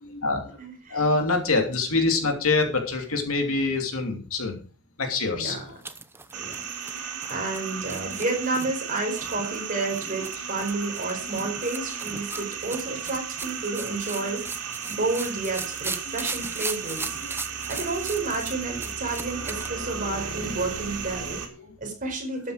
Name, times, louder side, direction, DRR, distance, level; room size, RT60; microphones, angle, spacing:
voice 1, 0.0-0.6 0.9-4.6 5.0-5.8 12.3-12.5 13.1-13.2 14.2-14.3 16.1-16.2 17.2-17.3 21.5-21.8, left 3 dB, 65° left, 3 dB, 2.9 m, -26 dB
voice 2, 0.6-1.0 5.3-5.6 6.3-6.5 6.9-21.4 21.8-22.5, right 3 dB, 35° right, 1 dB, 5.1 m, -31 dB
sound 1, 5.4-19.7, right 3 dB, 10° right, 0.7 m, -38 dB
sound 2, 6.3-21.5, right 6 dB, 90° right, 3.1 m, -35 dB
13.0 x 8.9 x 4.9 m, 0.35 s
head